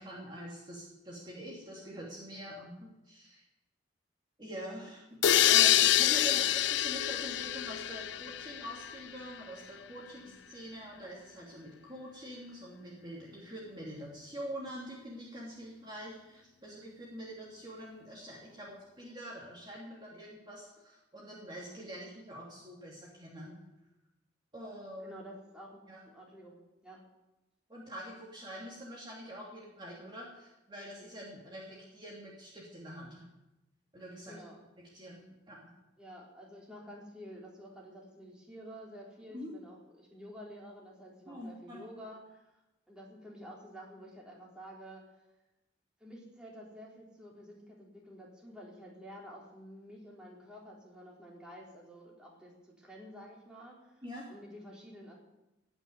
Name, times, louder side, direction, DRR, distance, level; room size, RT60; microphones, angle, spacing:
voice 1, 0.0-3.4 4.4-5.0 5.5-6.4 6.7-23.6 24.5-25.2 25.9-26.0 27.7-33.3 33.9-34.3 34.9-35.6 39.3-39.5 41.3-41.8 54.0-54.3, equal, 25° right, -4 dB, 2.7 m, -45 dB
sound 1, 5.2-9.0, left 12 dB, 75° left, 0.4 m, -26 dB
voice 2, 25.0-27.0 34.3-34.6 36.0-42.4 42.9-45.0 46.0-55.1, equal, 5° right, -4 dB, 3.8 m, -50 dB
18.5 x 6.2 x 9.6 m, 0.97 s
head